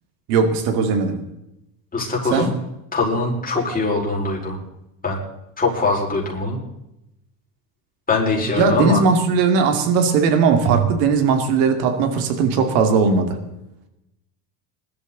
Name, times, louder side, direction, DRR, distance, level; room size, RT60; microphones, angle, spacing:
voice 1, 0.3-1.2 2.3-2.5 8.6-13.3, right 5 dB, 90° right, 7 dB, 2.6 m, -18 dB
voice 2, 1.9-2.5 2.9-4.6 5.0-5.2 5.6-6.6 8.1-9.0, left 3 dB, 20° left, -2 dB, 5.2 m, -22 dB
21.5 x 13.0 x 4.0 m, 0.88 s
cardioid pair, 130°, 46 cm